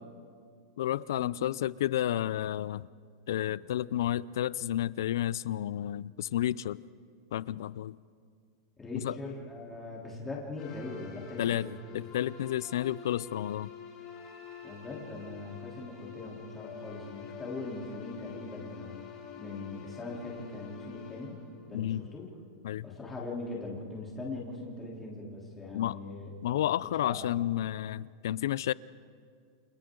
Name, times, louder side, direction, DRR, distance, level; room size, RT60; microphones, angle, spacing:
voice 1, 0.8-2.9 3.3-6.8 7.3-8.0 9.0-9.2 11.4-11.7 11.9-13.7 21.7-22.1 22.6-22.9 25.7-26.0 26.4-28.7, left 12 dB, 75° left, 0.5 m, -31 dB
voice 2, 8.8-11.8 14.6-19.0 19.4-21.4 21.6-22.3 22.8-26.3 27.0-27.2, left 2 dB, 10° left, 3.5 m, -41 dB
sound 1, 10.6-22.4, left 7 dB, 25° left, 6.9 m, -47 dB
30.0 x 26.5 x 3.9 m
supercardioid pair, 165°, 2 cm